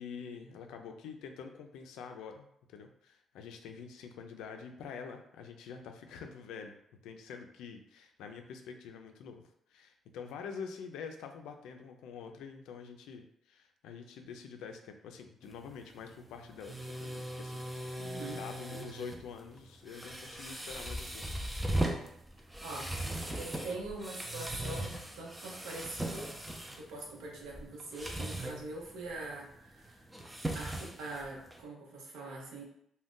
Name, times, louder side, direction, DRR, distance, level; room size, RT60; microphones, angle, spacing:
voice 1, 0.0-6.7 7.0-9.4 9.7-21.2, left 6 dB, 90° left, 5 dB, 0.3 m, -46 dB
sound 1, 15.4-31.6, right 1 dB, 10° right, 0.4 m, -39 dB
voice 2, 18.0-18.4 22.6-22.9 23.4-26.3 26.7-30.0 30.5-32.6, right 2 dB, 90° right, -2 dB, 0.7 m, -43 dB
2.5 x 2.1 x 3.5 m, 0.73 s
cardioid pair, 90°, 0 cm